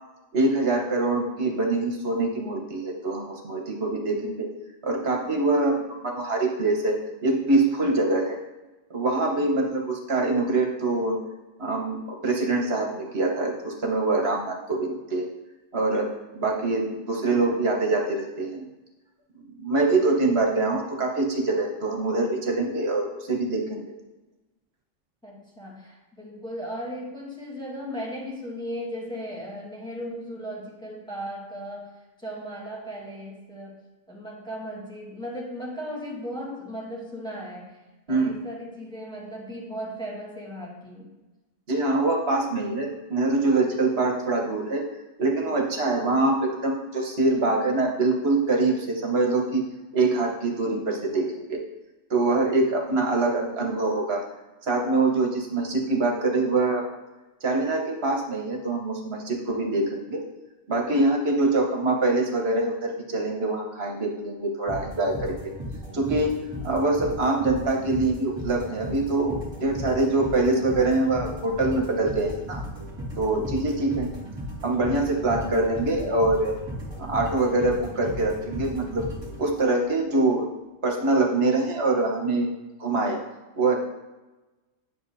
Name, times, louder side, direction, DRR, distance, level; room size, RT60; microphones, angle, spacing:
voice 1, 0.3-4.5 4.8-6.9 7.2-8.4 8.9-11.2 11.6-15.3 15.7-18.6 19.4-23.9 38.1-38.4 41.7-44.8 45.2-49.6 49.9-51.6 52.1-54.2 54.6-56.8 57.4-60.2 60.7-65.4 65.9-72.6 73.2-74.1 74.6-76.5 77.0-79.1 79.4-80.5 80.8-82.5 82.8-83.2 83.5-83.8, right 2 dB, 55° right, 0 dB, 1.4 m, -24 dB
voice 2, 25.2-33.8 34.1-37.8 38.1-41.2, equal, 5° left, -4 dB, 1.5 m, -36 dB
sound 1, 64.7-79.9, equal, 20° right, 2.1 m, -36 dB
9.7 x 6.2 x 2.7 m, 1.1 s
omnidirectional pair, 1.4 m